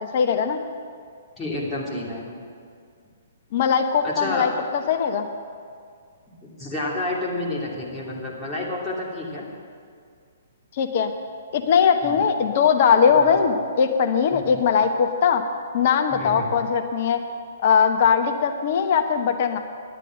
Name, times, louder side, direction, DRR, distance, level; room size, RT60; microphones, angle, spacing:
voice 1, 0.1-0.6 3.5-5.3 10.7-11.1 11.5-15.4 15.7-17.2 17.6-19.6, left 6 dB, 45° left, 5 dB, 0.9 m, -20 dB
voice 2, 1.4-2.3 4.0-4.5 6.4-9.4 12.0-12.2 13.2-13.4 14.3-14.5 16.1-16.5, left 2 dB, 10° left, -7 dB, 3.0 m, -30 dB
11.0 x 9.7 x 7.7 m, 2.2 s
figure-of-eight pair, 120°, 0 cm